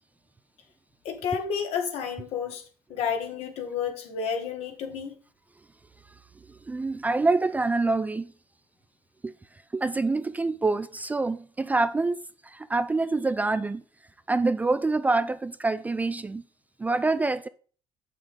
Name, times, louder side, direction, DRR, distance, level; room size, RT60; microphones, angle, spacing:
voice 1, 1.0-2.6 2.9-5.2, left 7 dB, 70° left, 1.6 m, -31 dB
voice 2, 6.7-8.3 9.2-9.3 9.7-12.2 12.5-13.8 14.3-16.4 16.8-17.5, right 3 dB, 15° right, 0.3 m, -26 dB
6.6 x 6.1 x 3.6 m
cardioid pair, 110°, 11 cm